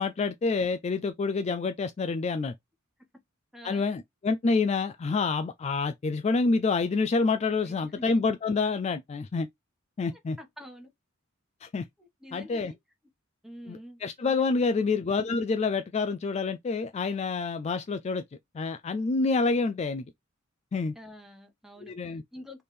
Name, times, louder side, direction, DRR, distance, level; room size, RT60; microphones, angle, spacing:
voice 1, 0.0-2.5 3.6-9.5 10.0-10.4 11.6-11.9 12.3-12.7 13.7-18.2 18.5-20.0 20.7-20.9 21.8-22.2, left 4 dB, 30° left, 0.3 m, -27 dB
voice 2, 3.5-3.9 7.6-8.0 10.1-10.9 12.0-12.8 13.4-14.0 20.9-22.6, equal, ahead, 1.1 m, -47 dB
3.4 x 3.4 x 4.2 m
head